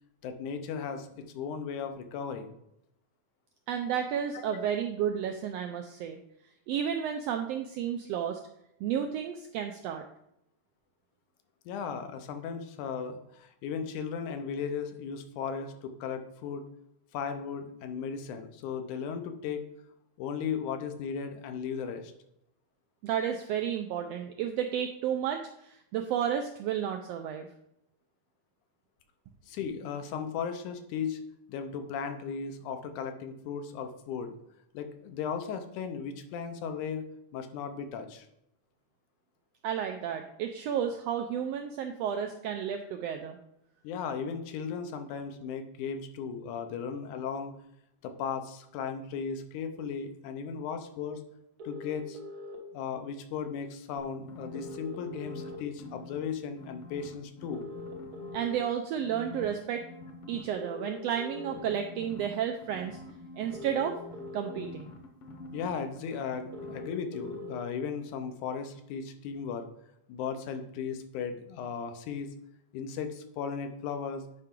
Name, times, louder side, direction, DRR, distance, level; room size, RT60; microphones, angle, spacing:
voice 1, 0.2-2.6 4.5-4.7 11.7-16.6 17.1-19.6 20.2-22.1 29.5-31.2 31.5-34.4 34.7-37.1 37.3-38.3 43.8-47.5 48.0-51.2 51.6-52.2 52.7-57.7 65.5-69.7 70.1-72.3 72.7-74.2, left 6 dB, 85° left, 7 dB, 2.3 m, -36 dB
voice 2, 3.7-6.2 6.7-8.4 8.8-10.0 23.0-27.5 39.6-43.4 58.3-59.8 60.3-63.0 63.4-63.9 64.3-64.9, right 9 dB, 85° right, 5 dB, 1.4 m, -32 dB
sound 1, 51.6-52.6 54.5-55.6 57.5-58.5 60.5-61.5 63.5-64.5 66.5-67.5, left 2 dB, 65° right, 0.9 m, -42 dB
sound 2, 54.0-56.2 56.6-58.6 59.0-60.4 61.3-66.9 67.2-67.4, left 2 dB, 65° left, 1.6 m, -47 dB
9.2 x 5.6 x 3.7 m, 0.79 s
omnidirectional pair, 3.4 m